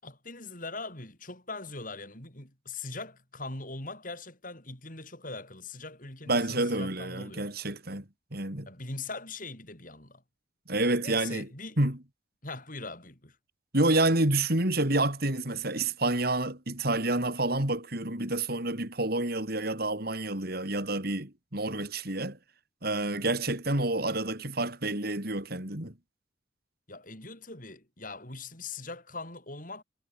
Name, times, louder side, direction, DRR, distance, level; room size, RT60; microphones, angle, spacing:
voice 1, 0.0-7.5 8.7-10.2 11.0-11.8 12.4-13.3 26.9-29.8, left 3 dB, 45° left, 6.9 m, -41 dB
voice 2, 6.3-8.0 8.3-8.7 10.7-11.5 11.8-12.0 13.7-22.4 22.8-25.9, right 2 dB, 50° right, 4.0 m, -28 dB
head